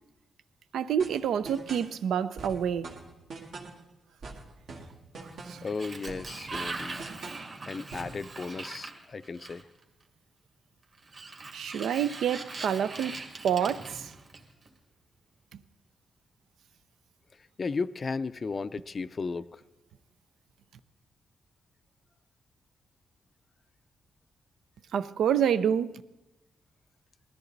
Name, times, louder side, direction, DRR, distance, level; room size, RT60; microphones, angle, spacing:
voice 1, 0.7-2.9 5.5-5.6 11.5-13.1 13.4-14.1 15.5-15.6 24.9-26.0, right 8 dB, 85° right, 0.5 m, -28 dB
sound 1, 1.0-1.9 2.4-3.8 4.2-5.7 6.1-7.5 7.9-8.2, right 3 dB, 70° right, 2.1 m, -43 dB
Sliding door, 5.2-9.8 11.0-14.7, right 3 dB, 45° right, 1.9 m, -41 dB
voice 2, 5.6-7.0 7.7-9.7 17.6-19.6, left 4 dB, 35° left, 0.4 m, -35 dB
19.5 x 13.5 x 4.0 m
wide cardioid pair, 130°, 0 cm